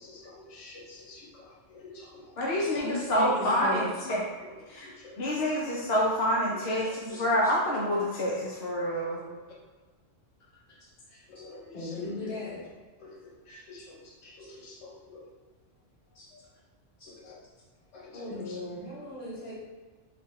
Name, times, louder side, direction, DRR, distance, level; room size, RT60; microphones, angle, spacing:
voice 1, 0.0-3.9 4.4-5.6 6.4-7.6 8.4-8.9 9.2-9.4 11.1-12.3 13.0-15.2 16.3-16.4 17.0-17.4 17.9-18.6, left 2 dB, 90° left, -3 dB, 1.1 m, -43 dB
voice 2, 2.4-4.2 4.7-4.9 5.2-9.2, equal, 60° left, -5 dB, 0.8 m, -27 dB
voice 3, 7.1-7.5 10.7-10.9 11.7-12.6 16.1-16.3 17.0-17.1 18.1-19.5, left 2 dB, 45° left, -8 dB, 1.3 m, -39 dB
4.1 x 2.3 x 3.1 m, 1.4 s
omnidirectional pair, 1.3 m